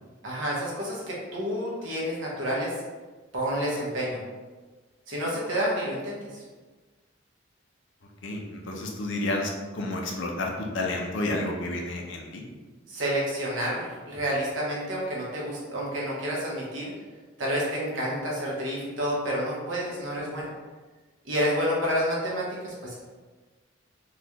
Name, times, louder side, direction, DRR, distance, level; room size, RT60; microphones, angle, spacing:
voice 1, 0.2-2.7 3.3-4.2 5.1-6.4 12.9-16.9 17.4-20.5 21.2-22.9, equal, 70° right, -5 dB, 1.1 m, -29 dB
voice 2, 8.2-12.4, left 2 dB, 65° left, 1 dB, 0.6 m, -30 dB
3.9 x 2.4 x 2.9 m, 1.3 s
head